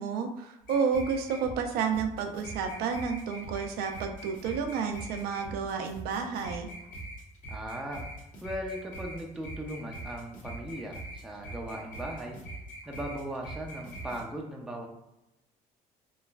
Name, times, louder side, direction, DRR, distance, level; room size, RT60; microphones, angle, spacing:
voice 1, 0.0-6.7, right 6 dB, 70° right, 5 dB, 0.5 m, -31 dB
sound 1, 0.6-14.2, right 1 dB, 55° left, 0.9 m, -42 dB
voice 2, 7.5-8.0 8.4-12.4 12.9-14.9, right 1 dB, ahead, -1 dB, 0.4 m, -38 dB
3.0 x 2.4 x 2.2 m, 0.91 s
cardioid pair, 100°, 16 cm